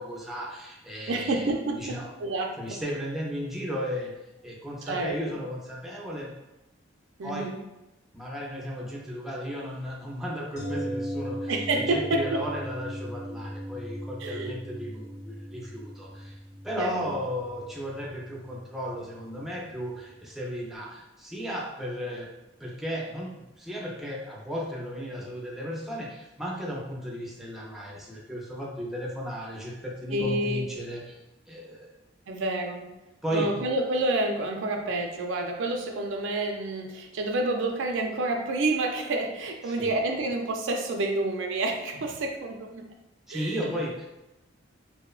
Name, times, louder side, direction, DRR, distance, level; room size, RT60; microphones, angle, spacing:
voice 1, 0.0-2.1 2.6-4.1 4.4-6.3 7.2-7.5 8.1-22.3 22.6-31.2 31.5-31.9 33.2-33.6 39.6-40.0 43.3-44.1, equal, ahead, -4 dB, 0.4 m, -35 dB
voice 2, 1.1-2.8 4.9-5.4 7.2-7.6 11.5-12.4 14.2-14.6 16.8-17.1 30.1-30.7 32.3-32.9 33.3-42.8 43.3-43.7, right 2 dB, 85° right, 2 dB, 0.4 m, -29 dB
sound 1, 10.6-20.4 20.7-20.8, equal, 40° left, 0.7 m, -38 dB
2.9 x 2.0 x 2.3 m, 0.95 s
head